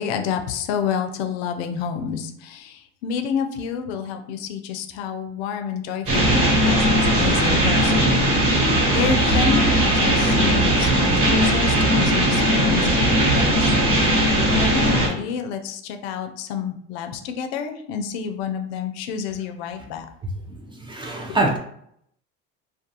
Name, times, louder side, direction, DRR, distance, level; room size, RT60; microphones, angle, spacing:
voice 1, 0.0-20.1 21.3-21.4, left 7 dB, 85° left, 6 dB, 0.5 m, -29 dB
sound 1, 6.1-15.1, right 1 dB, 50° right, 1.3 m, -18 dB
voice 2, 20.7-21.6, right 2 dB, 15° right, 1 dB, 0.5 m, -24 dB
2.4 x 2.3 x 2.8 m, 0.70 s
supercardioid pair, 105°, 31 cm